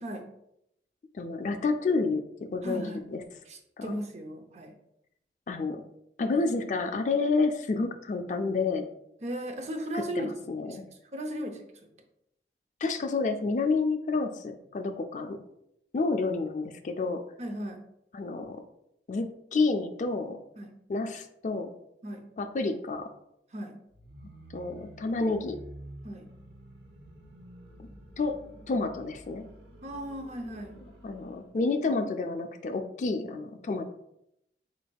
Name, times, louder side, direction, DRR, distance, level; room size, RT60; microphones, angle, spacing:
voice 1, 1.2-2.3 2.5-3.2 3.8-4.0 5.5-5.8 6.2-8.9 9.9-10.8 12.8-15.4 15.9-17.2 18.1-18.6 19.1-20.4 20.9-21.7 22.4-23.1 24.5-25.6 27.8-27.9 28.2-28.4 28.7-29.4 31.0-33.8, left 3 dB, 45° left, 7 dB, 0.3 m, -29 dB
voice 2, 2.6-3.1 3.5-4.7 9.2-10.3 10.7-10.8 11.1-11.6 17.4-17.8 20.6-20.7 22.0-22.3 23.5-23.7 26.0-26.2 29.8-30.8, equal, 40° right, 4 dB, 0.6 m, -36 dB
sound 1, 23.9-31.6, right 1 dB, 65° right, 0.9 m, -50 dB
5.1 x 4.1 x 2.3 m, 0.79 s
head